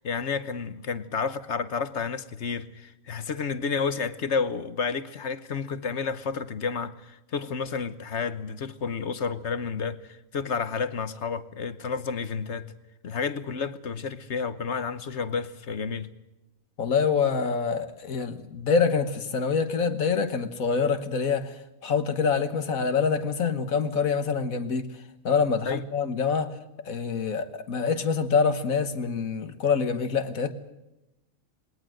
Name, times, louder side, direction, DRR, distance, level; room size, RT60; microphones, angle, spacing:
voice 1, 0.0-12.7 13.0-16.1 25.6-25.8, left 5 dB, 60° left, 1.3 m, -31 dB
voice 2, 16.8-24.9 25.2-26.6 26.9-30.5, left 5 dB, 80° left, 1.8 m, -26 dB
21.0 x 18.5 x 7.7 m
omnidirectional pair, 1.4 m